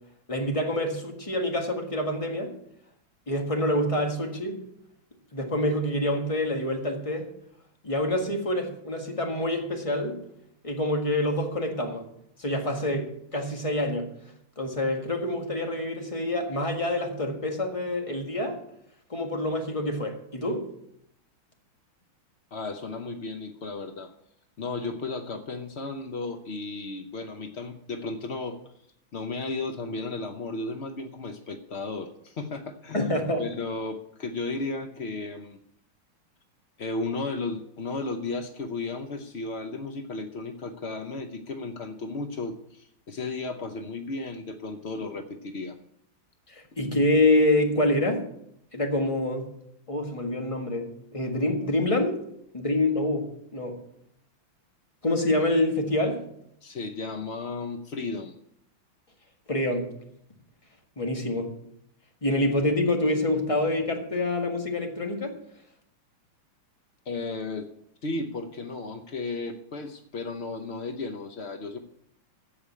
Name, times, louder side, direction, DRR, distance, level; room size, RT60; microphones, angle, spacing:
voice 1, 0.3-2.5 3.3-4.6 5.3-7.3 7.8-10.2 10.6-12.0 12.4-14.1 14.6-18.6 19.1-20.7 32.9-33.4 46.5-48.2 48.7-49.5 49.9-52.2 52.5-53.8 55.0-56.2 59.5-59.9 61.0-61.5 62.2-65.3, left 1 dB, 15° left, 3 dB, 1.5 m, -26 dB
voice 2, 22.5-24.1 24.6-28.6 29.1-33.1 33.4-35.6 36.8-45.8 56.6-58.4 67.1-67.7 68.0-71.8, left 3 dB, 75° left, 6 dB, 0.6 m, -34 dB
15.0 x 5.1 x 8.3 m, 0.75 s
omnidirectional pair, 2.3 m